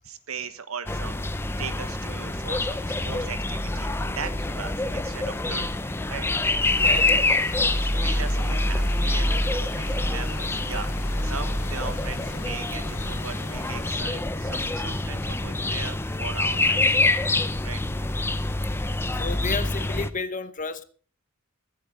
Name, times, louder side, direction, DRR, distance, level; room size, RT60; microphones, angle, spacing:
voice 1, 0.0-5.8 6.1-6.3 7.1-17.0 17.6-17.8, right 6 dB, 75° right, 1.3 m, -39 dB
sound 1, 0.9-20.1, left 2 dB, 10° left, 0.6 m, -26 dB
Water, 6.6-13.9, left 6 dB, 90° left, 1.0 m, -43 dB
voice 2, 6.8-7.1 19.1-20.8, left 4 dB, 35° left, 0.9 m, -32 dB
23.0 x 8.4 x 3.8 m
head